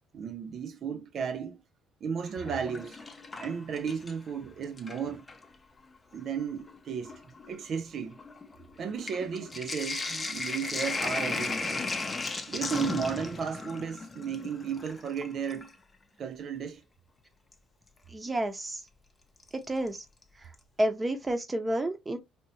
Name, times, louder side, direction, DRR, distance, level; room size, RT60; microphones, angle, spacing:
voice 1, 0.1-1.6 2.0-3.0 3.4-5.3 6.1-7.2 7.5-8.2 8.8-11.9 12.5-15.7 16.2-16.8, right 7 dB, 50° right, 0.3 m, -34 dB
Sink (filling or washing), 2.3-4.3 4.6-5.5 6.3-6.4 6.6-15.7 17.5-17.6 19.4-19.9 20.2-20.3 20.5-20.6, left 3 dB, 20° left, 0.6 m, -36 dB
voice 2, 18.1-18.8 19.5-20.0 20.8-22.2, right 1 dB, 15° right, 0.8 m, -30 dB
2.9 x 2.7 x 2.8 m
cardioid pair, 105°, 0 cm